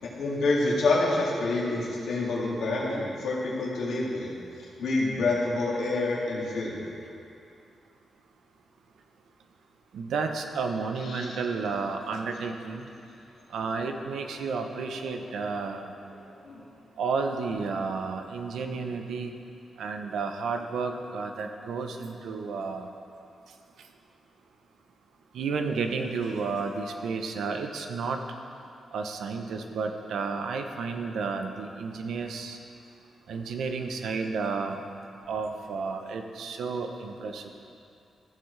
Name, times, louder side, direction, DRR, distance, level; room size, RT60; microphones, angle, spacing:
voice 1, 0.0-4.3 4.8-6.8 11.0-11.4 16.3-16.6, left 2 dB, 75° left, -5 dB, 2.2 m, -27 dB
voice 2, 9.9-12.9 13.5-15.9 17.0-19.3 19.8-22.9 25.3-28.2 28.9-32.6 33.3-34.8 35.3-37.5, right 4 dB, 85° right, 5 dB, 0.7 m, -32 dB
15.0 x 7.1 x 3.3 m, 2.6 s
wide cardioid pair, 170°, 0 cm